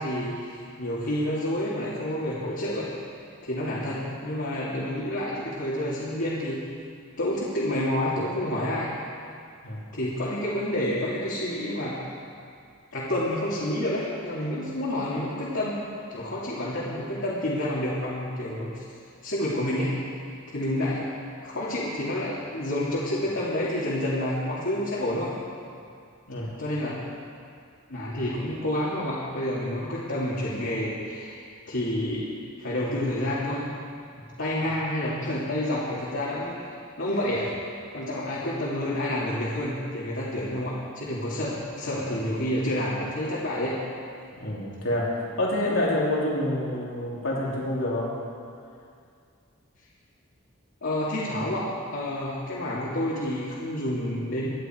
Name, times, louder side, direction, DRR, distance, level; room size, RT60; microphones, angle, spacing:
voice 1, 0.0-6.6 7.2-8.9 9.9-12.0 12.9-15.8 16.1-18.8 19.2-20.0 20.5-21.1 21.4-25.3 26.6-27.0 27.9-31.4 31.7-32.3 32.6-33.7 34.4-37.5 37.9-43.8 50.8-51.7 51.9-54.5, left 1 dB, 65° left, -8 dB, 2.8 m, -29 dB
voice 2, 44.3-48.1, left 1 dB, 85° left, -5 dB, 3.5 m, -27 dB
25.5 x 10.5 x 4.7 m, 2.3 s
head